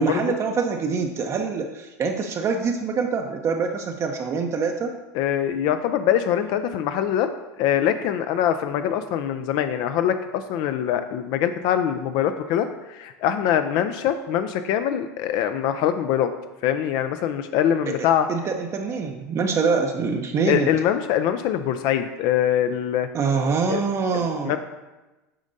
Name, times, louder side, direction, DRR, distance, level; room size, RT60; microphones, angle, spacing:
voice 1, 0.0-4.9 17.9-20.7 23.1-24.6, right 5 dB, 35° right, 3 dB, 0.6 m, -25 dB
voice 2, 5.2-7.3 7.6-16.3 16.6-18.3 20.5-23.1 23.7-23.8 24.1-24.6, left 10 dB, 55° left, 9 dB, 0.4 m, -23 dB
8.6 x 5.1 x 2.6 m, 1.1 s
hypercardioid pair, 95°, 9 cm